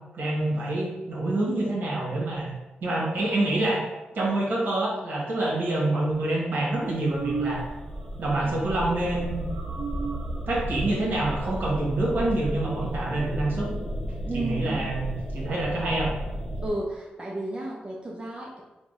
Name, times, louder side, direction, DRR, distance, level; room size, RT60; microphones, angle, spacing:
voice 1, 0.1-2.5 2.8-3.8 4.1-7.6 8.2-9.4 10.5-13.7 14.3-16.1, right 2 dB, 65° right, -5 dB, 1.4 m, -26 dB
sound 1, 6.8-16.7, equal, 15° left, 1.2 m, -34 dB
sound 2, 7.1-8.0 8.3-8.6 8.8-12.0, right 3 dB, 90° right, 0.3 m, -35 dB
voice 2, 14.2-14.8 16.6-18.6, right 1 dB, 30° right, -2 dB, 0.6 m, -32 dB
3.8 x 2.3 x 3.9 m, 1.1 s
cardioid pair, 55°, 3 cm